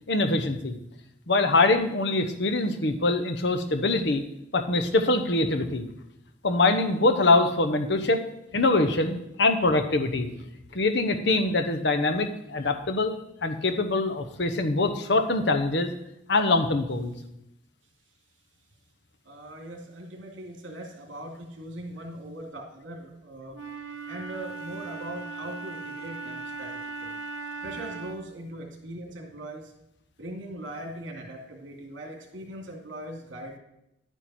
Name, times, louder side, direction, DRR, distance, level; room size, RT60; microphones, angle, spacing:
voice 1, 0.1-0.8 1.3-4.2 4.5-5.9 6.4-8.2 8.5-10.3 10.7-13.1 13.4-15.9 16.3-17.1, left 2 dB, 60° left, 6 dB, 0.9 m, -24 dB
voice 2, 19.2-23.6 24.1-27.2 27.6-29.7 30.2-33.6, right 1 dB, 75° right, 1 dB, 2.7 m, -40 dB
Wind instrument woodwind instrument, 23.5-28.4, right 3 dB, 90° right, 1.3 m, -38 dB
11.0 x 9.1 x 4.3 m, 0.83 s
head